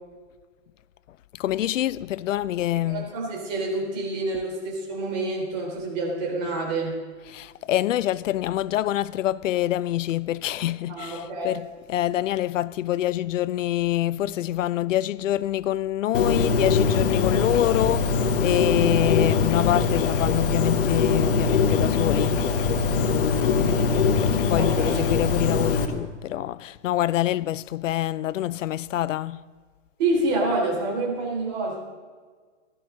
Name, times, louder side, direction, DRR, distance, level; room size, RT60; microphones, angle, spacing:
voice 1, 1.3-3.1 7.3-22.4 22.9-29.4, left 13 dB, 85° left, 0.5 m, -26 dB
voice 2, 2.9-7.0 10.9-11.6 23.3-23.7 24.6-25.0 30.0-31.8, right 2 dB, 35° right, 3.8 m, -27 dB
Bird, 16.1-25.9, left 5 dB, 45° left, 1.2 m, -22 dB
16.5 x 12.5 x 3.8 m
hypercardioid pair, 170°, 37 cm